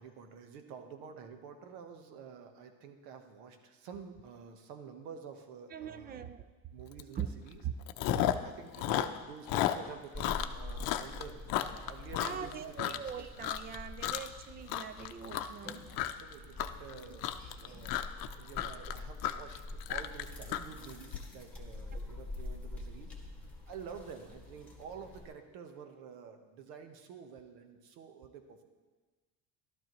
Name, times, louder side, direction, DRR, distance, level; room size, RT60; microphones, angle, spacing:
voice 1, 0.0-6.3 6.7-7.6 8.4-13.0 15.9-19.6 19.9-28.6, right 6 dB, 80° right, 6 dB, 1.3 m, -49 dB
voice 2, 5.7-6.5 7.2-7.3 7.6-7.7 8.2-8.3 12.2-15.8 21.9-22.1, right 8 dB, 25° right, 12 dB, 0.4 m, -41 dB
Chewing mastication, 7.0-7.2 7.5-8.5 8.7-13.1 13.4-13.8 14.0-14.4 14.7-21.2, left 13 dB, 65° left, 0.7 m, -33 dB
sound 1, 10.1-25.3, left 2 dB, 5° left, 1.9 m, -46 dB
12.5 x 12.0 x 3.1 m, 1.3 s
cardioid pair, 135°, 37 cm